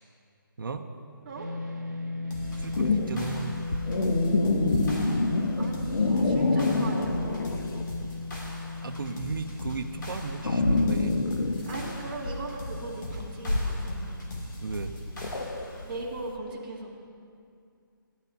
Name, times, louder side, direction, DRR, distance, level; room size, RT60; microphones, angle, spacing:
sound 1, 1.4-15.8, left 3 dB, 50° right, 1.4 m, -39 dB
sound 2, 2.3-15.9, left 1 dB, 55° left, 2.3 m, -41 dB
sound 3, 2.5-8.1 8.4-16.2, left 2 dB, 80° left, 1.1 m, -27 dB
voice 1, 2.6-3.6 8.8-11.1 14.6-14.9, right 4 dB, 70° right, 5 dB, 0.7 m, -35 dB
voice 2, 5.6-7.6 11.7-14.1 15.8-16.9, right 2 dB, 25° right, -6 dB, 1.8 m, -39 dB
18.0 x 10.5 x 2.7 m, 2.3 s
hypercardioid pair, 175°, 12 cm